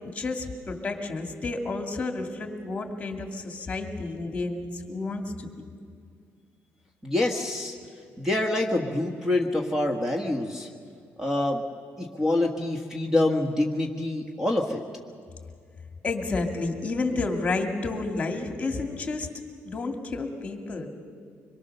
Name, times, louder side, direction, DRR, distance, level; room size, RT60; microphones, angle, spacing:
voice 1, 0.1-5.5 16.0-19.3 19.6-20.9, left 3 dB, 25° left, 4 dB, 2.3 m, -30 dB
voice 2, 7.0-7.8 8.2-10.7 11.2-11.6 12.0-14.8, left 1 dB, 10° right, 2 dB, 1.4 m, -26 dB
25.0 x 22.0 x 6.7 m, 2.2 s
cardioid pair, 150°, 5 cm